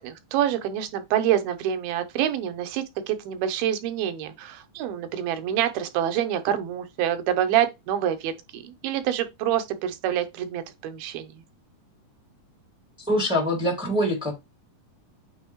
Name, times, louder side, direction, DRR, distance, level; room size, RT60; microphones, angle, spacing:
voice 1, 0.0-11.3, right 10 dB, 85° right, 2.7 m, -26 dB
voice 2, 13.0-14.3, equal, 5° right, 0.4 m, -24 dB
8.8 x 3.8 x 3.0 m
omnidirectional pair, 4.2 m